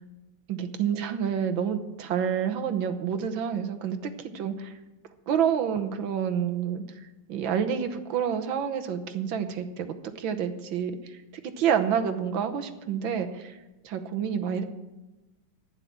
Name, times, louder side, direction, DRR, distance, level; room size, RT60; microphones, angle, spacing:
voice 1, 0.5-4.7 5.3-6.8 7.3-9.9 10.2-11.2 11.4-13.5 13.8-14.6, right 8 dB, 80° right, 8 dB, 1.8 m, -28 dB
11.5 x 9.7 x 7.3 m, 1.1 s
omnidirectional pair, 2.1 m